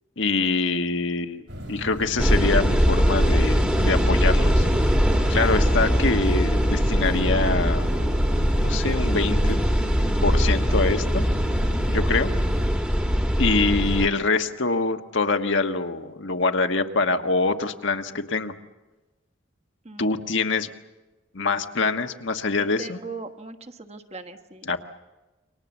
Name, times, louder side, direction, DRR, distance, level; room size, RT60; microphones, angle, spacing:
voice 1, 0.2-4.6 5.3-7.9 8.5-9.6 10.2-11.2 11.9-12.3 13.4-18.5 20.0-20.7 21.3-23.0 24.7-24.8, left 3 dB, 75° left, 6 dB, 1.4 m, -24 dB
sound 1, 1.5-12.7, equal, 70° right, 5.5 m, -35 dB
sound 2, 2.2-14.1, equal, 5° right, 1.4 m, -21 dB
Harp, 4.6-9.8, left 1 dB, 20° left, 1.1 m, -39 dB
voice 2, 19.8-20.2 22.6-24.8, right 3 dB, 35° right, 6 dB, 1.4 m, -40 dB
29.0 x 24.5 x 7.2 m, 1.1 s
head